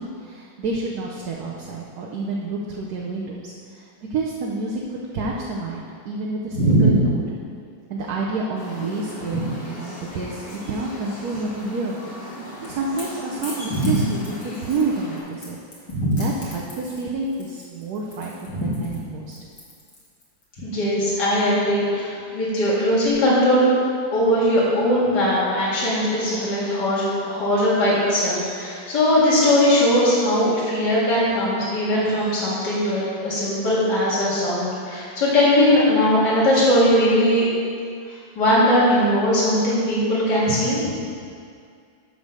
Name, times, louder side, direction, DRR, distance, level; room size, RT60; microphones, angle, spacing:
voice 1, 0.0-7.2 7.9-15.6 16.0-19.4, right 3 dB, 60° right, -2 dB, 1.1 m, -29 dB
voice 2, 6.5-6.9 9.3-9.4 13.7-13.9 15.9-16.2 18.5-18.7 20.6-23.7 24.1-37.5 38.1-40.8, equal, 60° left, -9 dB, 2.6 m, -20 dB
sound 1, 8.6-15.2, equal, 85° left, 3.1 m, -38 dB
Crackle / Crack, 12.3-20.4, left 2 dB, 45° left, 2.1 m, -43 dB
10.5 x 3.9 x 6.6 m, 2.3 s
omnidirectional pair, 2.1 m